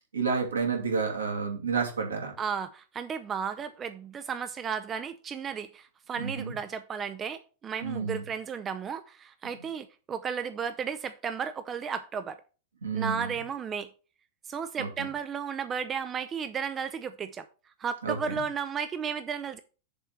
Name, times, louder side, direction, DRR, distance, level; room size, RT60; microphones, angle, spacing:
voice 1, 0.1-2.3 6.2-6.5 7.8-8.2 12.8-13.3 14.8-15.1 18.0-18.4, right 5 dB, 75° right, 2.4 m, -30 dB
voice 2, 2.4-12.4 12.9-13.9 14.4-17.5 17.8-19.6, right 6 dB, 25° right, 0.5 m, -34 dB
6.8 x 4.2 x 6.6 m
figure-of-eight pair, 90°, 0 cm